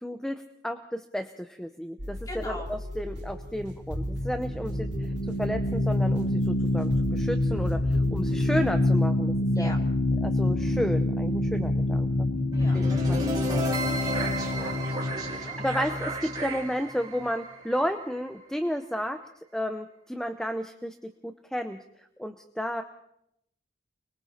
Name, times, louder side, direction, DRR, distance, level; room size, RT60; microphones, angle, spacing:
voice 1, 0.0-5.1 5.4-9.7 10.2-12.3 12.7-13.7 15.3-19.2 19.5-21.8 22.2-22.8, equal, 5° left, 7 dB, 0.7 m, -32 dB
sound 1, 2.0-8.7, right 1 dB, 90° right, 4.5 m, -38 dB
voice 2, 2.3-2.7 9.5-9.8 12.5-15.6, left 1 dB, 20° left, 2 dB, 3.1 m, -43 dB
sound 2, 3.4-16.7, left 2 dB, 45° left, 1.0 m, -27 dB
sound 3, 12.5-18.6, right 2 dB, 20° right, 4.6 m, -33 dB
30.0 x 22.0 x 4.3 m, 0.78 s
head